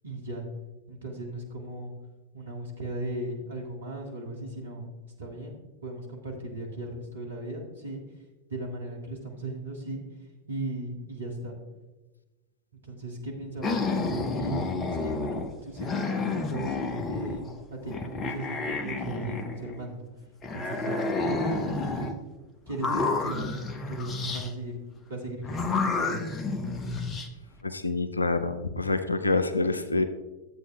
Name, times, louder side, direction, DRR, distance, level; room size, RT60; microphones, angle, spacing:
voice 1, 0.0-0.4 0.9-1.9 2.3-4.9 5.2-8.0 8.5-10.0 10.5-11.6 12.8-20.1 20.5-22.1 22.7-24.7 25.1-26.3, right 1 dB, 70° right, 0 dB, 1.6 m, -37 dB
sound 1, 13.6-15.5 15.8-17.5 17.9-19.9 20.4-22.2 22.7-24.5 25.4-27.3, left 3 dB, 25° left, 0.7 m, -30 dB
voice 2, 27.6-30.0, left 3 dB, 80° left, 11 dB, 0.5 m, -26 dB
12.5 x 8.1 x 2.3 m, 1.1 s
figure-of-eight pair, 90°, 0 cm